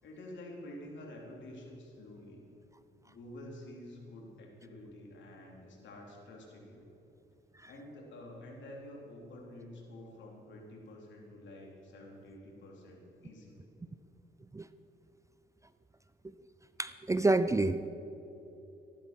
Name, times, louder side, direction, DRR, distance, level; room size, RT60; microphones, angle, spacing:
voice 1, 0.0-2.4 3.0-6.9 7.7-13.7, left 1 dB, 70° left, -1 dB, 3.7 m, -49 dB
voice 2, 16.8-17.9, right 2 dB, 15° right, 12 dB, 0.5 m, -28 dB
14.5 x 11.5 x 6.0 m, 3.0 s
cardioid pair, 90°, 20 cm